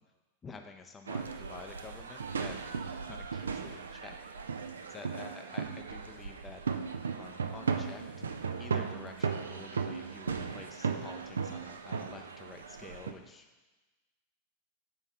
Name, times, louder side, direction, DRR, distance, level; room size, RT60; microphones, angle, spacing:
voice 1, 0.4-2.6 3.1-4.5 4.7-6.6 7.1-8.3 8.6-13.5, left 4 dB, 20° left, 5 dB, 0.5 m, -49 dB
sound 1, 1.1-13.1, right 5 dB, 70° right, 0.4 m, -36 dB
5.5 x 4.5 x 5.6 m, 1.2 s
figure-of-eight pair, 90°, 0 cm